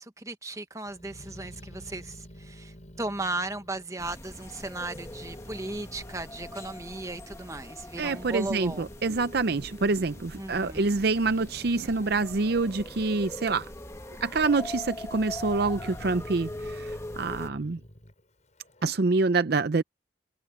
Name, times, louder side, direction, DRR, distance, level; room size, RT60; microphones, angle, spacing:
voice 1, 0.0-8.9 10.4-10.9, right 2 dB, 15° right, 1.2 m, -36 dB
Growling, 0.8-4.6 4.9-7.2 7.8-13.6 14.0-14.7 15.1-18.9, equal, 40° left, 7.8 m, -49 dB
sound 1, 4.0-17.5, left 1 dB, 15° left, 1.4 m, -42 dB
voice 2, 8.0-13.7 14.2-17.8 18.8-19.8, right 3 dB, 55° right, 0.6 m, -26 dB
head